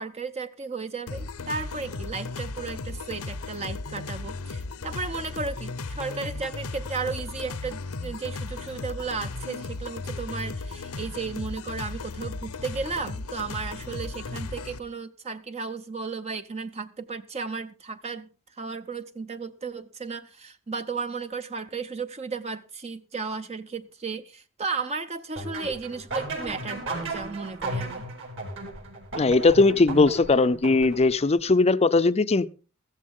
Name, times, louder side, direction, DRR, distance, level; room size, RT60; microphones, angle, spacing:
voice 1, 0.0-18.3 18.6-28.1, right 4 dB, 30° right, 0.6 m, -34 dB
sound 1, 1.1-14.8, left 3 dB, 85° left, 1.0 m, -36 dB
sound 2, 25.4-31.3, right 2 dB, 60° right, 5.1 m, -35 dB
voice 2, 29.2-32.5, left 3 dB, 30° left, 0.6 m, -19 dB
14.5 x 14.0 x 3.7 m
head